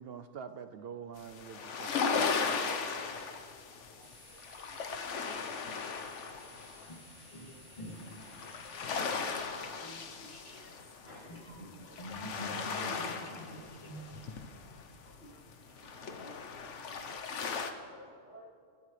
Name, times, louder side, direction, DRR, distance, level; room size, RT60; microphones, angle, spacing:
voice 1, 0.0-2.8 5.2-5.3, right 7 dB, 65° right, 0.7 m, -46 dB
sound 1, 1.2-7.6 7.9-17.7, left 5 dB, 85° left, 1.3 m, -37 dB
voice 2, 3.9-4.4 11.0-12.0 13.9-14.1 15.1-15.4 15.7-18.5, right 1 dB, 60° left, 4.2 m, -54 dB
sound 2, 4.0-9.2, right 1 dB, 20° right, 1.7 m, -58 dB
voice 3, 6.9-8.4 8.7-13.9, equal, 40° left, 2.9 m, -48 dB
27.5 x 13.5 x 3.3 m
omnidirectional pair, 1.2 m